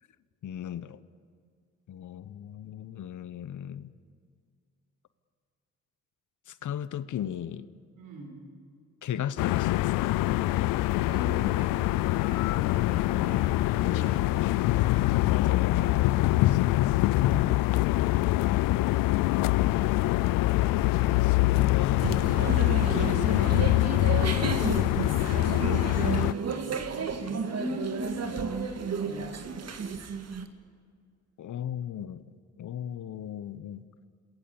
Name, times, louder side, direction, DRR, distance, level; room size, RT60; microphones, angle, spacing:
voice 1, 0.4-1.0 1.9-3.9 6.5-7.7 9.0-10.1 13.9-14.1 15.1-17.0 21.2-22.1 22.3-22.6 22.9-23.5 31.4-32.3 32.6-33.9, left 10 dB, 65° left, 15 dB, 1.0 m, -36 dB
voice 2, 7.9-8.3 11.0-14.5 17.2-17.5 25.2-25.4 25.8-26.0 26.3-26.8 27.2-29.8, right 1 dB, 75° right, 3 dB, 5.4 m, -41 dB
sound 1, 9.4-26.3, left 17 dB, 85° left, 0.6 m, -24 dB
sound 2, 22.0-30.5, right 5 dB, 50° right, 2.0 m, -32 dB
27.5 x 21.5 x 7.1 m, 2.2 s
supercardioid pair, 50°, 33 cm